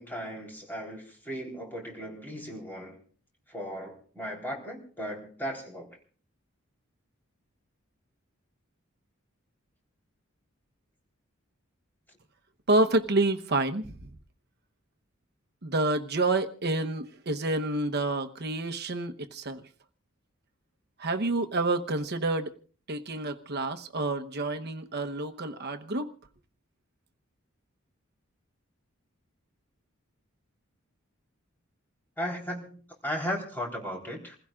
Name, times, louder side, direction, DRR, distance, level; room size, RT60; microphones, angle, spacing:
voice 1, 0.0-3.0 3.5-5.9 32.2-32.8 33.0-34.4, equal, 10° left, 3.8 m, -36 dB
voice 2, 12.7-13.9 15.6-19.6 21.0-22.5 22.9-26.1, right 2 dB, 50° right, 1.0 m, -28 dB
28.5 x 16.0 x 2.5 m
head